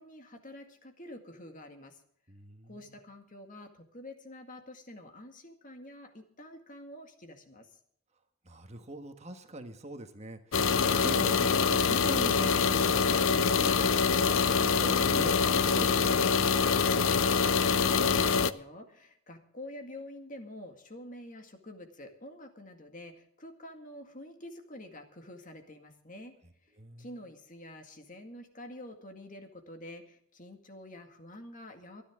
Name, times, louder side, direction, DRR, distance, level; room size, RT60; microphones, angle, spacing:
voice 1, 0.0-2.0 2.7-7.8 17.8-26.3 26.6-32.0, left 1 dB, 40° left, 5 dB, 2.1 m, -48 dB
voice 2, 2.3-3.0 8.4-13.0 13.3-16.9 26.8-27.2, right 1 dB, 30° right, 6 dB, 1.4 m, -42 dB
sound 1, 10.5-18.5, left 5 dB, 65° left, 0.7 m, -25 dB
25.5 x 10.0 x 3.7 m, 0.65 s
head